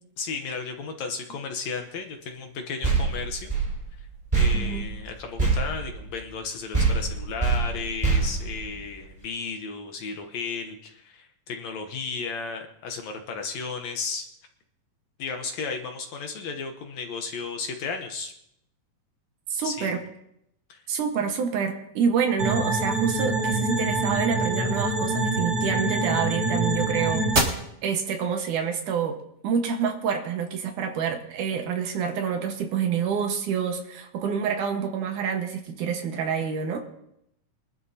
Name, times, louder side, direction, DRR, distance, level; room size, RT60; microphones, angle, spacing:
voice 1, 0.2-3.6 4.0-4.1 4.3-14.3 15.2-18.3 19.6-19.9 20.7-20.8, left 5 dB, 65° left, 4 dB, 2.0 m, -34 dB
sound 1, 2.8-6.5 6.7-9.2, right 4 dB, 10° right, 5.2 m, -25 dB
voice 2, 4.5-4.9 19.5-20.0 20.9-29.2 29.4-36.8, right 7 dB, 70° right, 4 dB, 2.7 m, -27 dB
sound 2, 22.4-27.4, right 2 dB, 30° right, 2.3 m, -25 dB
24.0 x 12.0 x 2.8 m, 0.78 s
omnidirectional pair, 3.8 m